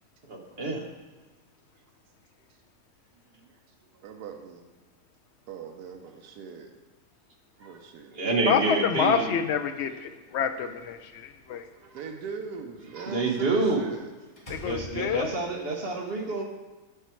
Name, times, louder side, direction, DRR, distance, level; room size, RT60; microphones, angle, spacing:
voice 1, 0.3-0.8 7.6-7.7 8.1-9.4 12.9-13.9 14.6-16.4, right 3 dB, 45° right, 2 dB, 1.1 m, -28 dB
voice 2, 3.9-4.7 5.5-6.7 7.6-8.2 11.8-14.1, right 5 dB, 80° right, 3 dB, 1.2 m, -40 dB
voice 3, 8.5-11.6 14.5-15.3, left 7 dB, 70° left, 8 dB, 0.6 m, -27 dB
Slam, 10.5-11.6 13.7-13.9 14.4-15.6, left 1 dB, 25° left, 1.2 m, -44 dB
7.2 x 7.1 x 4.4 m, 1.2 s
omnidirectional pair, 1.7 m